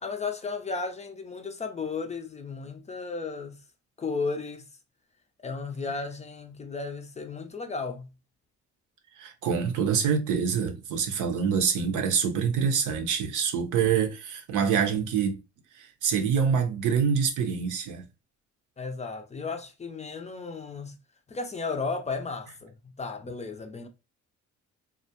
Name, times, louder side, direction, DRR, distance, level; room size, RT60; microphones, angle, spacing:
voice 1, 0.0-3.6 4.0-4.7 5.4-8.1 18.8-21.0 21.3-23.9, left 4 dB, 25° left, 0.4 m, -34 dB
voice 2, 9.2-15.4 15.8-18.0, right 6 dB, 85° right, 0.7 m, -26 dB
2.4 x 2.1 x 2.7 m
cardioid pair, 90°, 30 cm